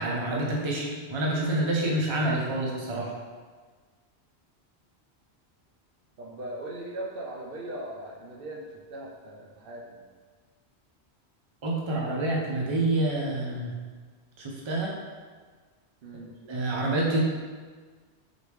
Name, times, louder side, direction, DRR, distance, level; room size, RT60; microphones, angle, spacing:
voice 1, 0.0-3.1 11.6-13.7 14.4-14.9 16.4-17.2, right 1 dB, 35° right, -2 dB, 0.6 m, -27 dB
voice 2, 6.2-10.1 16.0-16.3, right 1 dB, 60° right, -3 dB, 0.8 m, -39 dB
4.1 x 3.4 x 3.1 m, 1.5 s
omnidirectional pair, 1.1 m